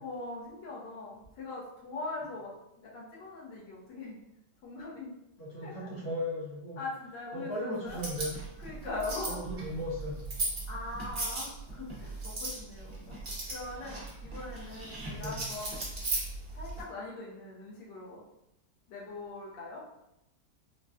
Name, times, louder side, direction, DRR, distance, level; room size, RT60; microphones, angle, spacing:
voice 1, 0.0-4.2 4.6-5.1 5.6-5.8 6.8-8.0 8.6-9.5 10.7-15.9 16.5-18.2 18.9-19.8, left 2 dB, 85° left, -4 dB, 1.5 m, -41 dB
voice 2, 5.4-6.8 7.3-8.4 9.2-10.2 15.2-15.4, equal, 65° left, -5 dB, 1.4 m, -36 dB
sound 1, 7.9-16.8, right 2 dB, 45° right, 0.7 m, -38 dB
3.9 x 2.1 x 2.3 m, 0.86 s
omnidirectional pair, 1.9 m